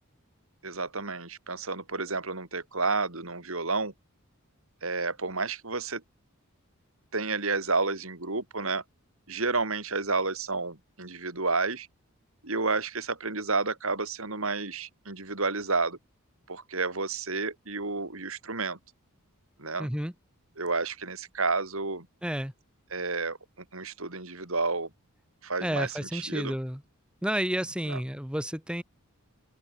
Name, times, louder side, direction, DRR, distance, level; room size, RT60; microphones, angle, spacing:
voice 1, 0.6-3.9 4.8-6.0 7.1-8.8 9.3-11.9 12.4-16.0 16.5-18.8 19.6-19.9 20.6-22.1 22.9-23.4 23.7-24.9 25.4-26.5 27.9-28.0, right 3 dB, 65° right, 3.6 m, -30 dB
voice 2, 19.8-20.1 22.2-22.5 25.6-26.8 27.2-28.8, equal, 5° right, 1.1 m, -31 dB
open air
head